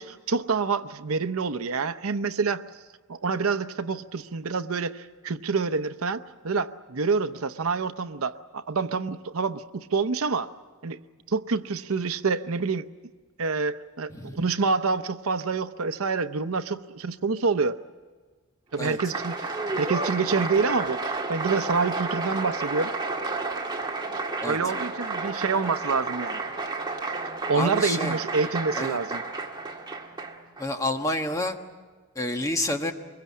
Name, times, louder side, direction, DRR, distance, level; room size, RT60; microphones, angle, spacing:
voice 1, 0.0-2.7 3.1-10.5 10.8-11.0 11.3-12.9 13.4-17.8 18.7-22.9 24.4-26.4 27.5-29.2, right 4 dB, 80° right, 12 dB, 0.8 m, -27 dB
Applause, 18.7-30.6, right 3 dB, 20° right, 1.8 m, -31 dB
voice 2, 27.5-28.2 28.8-29.0 30.6-31.6 32.1-32.9, left 1 dB, 15° left, 4 dB, 1.4 m, -28 dB
24.5 x 22.0 x 8.5 m, 1.4 s
head